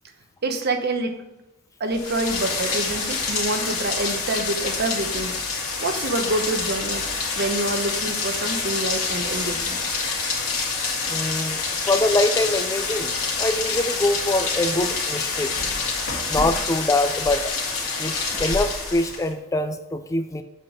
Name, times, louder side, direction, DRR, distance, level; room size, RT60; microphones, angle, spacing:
voice 1, 0.4-1.2 1.8-5.5 5.8-7.1 7.4-9.8, right 2 dB, 50° right, 5 dB, 0.9 m, -27 dB
Rain, 1.9-19.3, left 4 dB, 80° left, 2.0 m, -27 dB
voice 2, 11.1-11.6 11.9-13.1 13.4-15.5 16.3-17.5 18.0-20.4, left 2 dB, 15° left, 8 dB, 0.3 m, -24 dB
7.4 x 4.1 x 6.1 m, 0.94 s
head